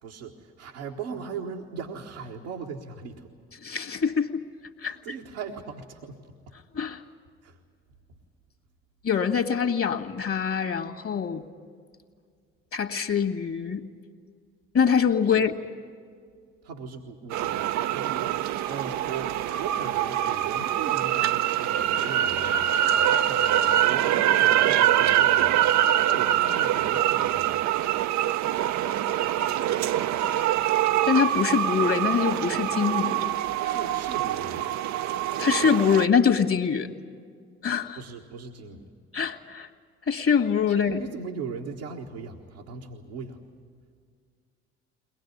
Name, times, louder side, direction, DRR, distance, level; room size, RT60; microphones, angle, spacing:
voice 1, 0.0-3.3 4.8-6.5 7.4-7.6 15.2-15.5 16.6-27.8 33.6-34.7 38.0-38.9 40.7-43.4, right 5 dB, 85° right, -2 dB, 1.5 m, -39 dB
voice 2, 3.6-4.4 4.8-5.2 6.7-7.0 9.0-11.5 12.7-13.8 14.7-15.5 31.1-33.3 35.4-36.9 37.6-38.0 39.1-39.7 40.1-41.0, left 6 dB, 45° left, 5 dB, 1.9 m, -24 dB
sound 1, 17.3-36.0, right 11 dB, 60° right, 0.7 m, -24 dB
22.5 x 19.5 x 9.5 m, 2.1 s
hypercardioid pair, 50°, 32 cm